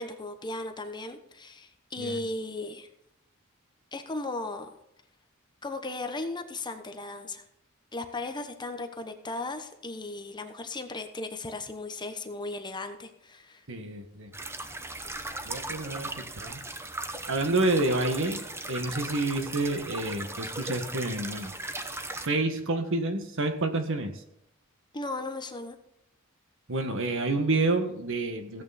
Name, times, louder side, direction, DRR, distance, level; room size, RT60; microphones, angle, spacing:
voice 1, 0.0-2.9 3.9-4.7 5.6-7.4 7.9-13.6 24.9-25.8, left 2 dB, 20° left, 7 dB, 1.0 m, -36 dB
voice 2, 13.7-14.3 15.5-16.6 17.3-21.5 22.2-24.2 26.7-28.6, right 2 dB, 65° right, 6 dB, 1.7 m, -29 dB
sound 1, 14.3-22.3, right 2 dB, 10° right, 0.9 m, -38 dB
16.0 x 8.6 x 4.3 m, 0.82 s
head